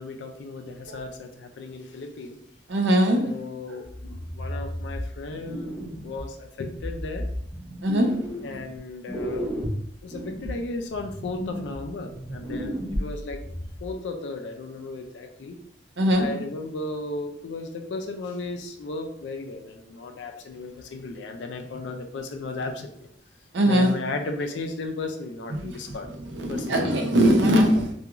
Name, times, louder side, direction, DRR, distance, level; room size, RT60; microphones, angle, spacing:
voice 1, 0.0-2.4 3.2-5.8 6.0-7.3 8.4-9.5 10.0-13.4 13.8-15.6 16.2-22.9 23.7-26.1 26.5-26.9, left 3 dB, 80° left, 5 dB, 0.3 m, -35 dB
voice 2, 2.7-3.2 7.8-8.1 16.0-16.2 23.5-23.9 25.5-25.6 26.3-27.8, equal, 80° right, 3 dB, 0.5 m, -20 dB
sound 1, 3.8-6.3 6.8-8.8 9.1-13.9, equal, 5° left, 0.6 m, -34 dB
2.3 x 2.3 x 2.9 m, 0.68 s
head